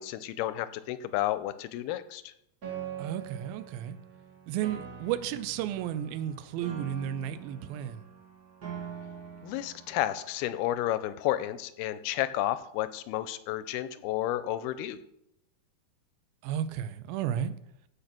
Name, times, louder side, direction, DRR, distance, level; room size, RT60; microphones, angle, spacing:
voice 1, 0.0-2.3 9.4-15.0, left 13 dB, 85° left, 2.5 m, -31 dB
Piano, 2.6-10.6, right 8 dB, 40° right, 1.4 m, -44 dB
voice 2, 3.0-4.0 4.5-8.0 16.4-17.5, right 10 dB, 80° right, 2.4 m, -33 dB
15.0 x 5.3 x 6.0 m
omnidirectional pair, 4.5 m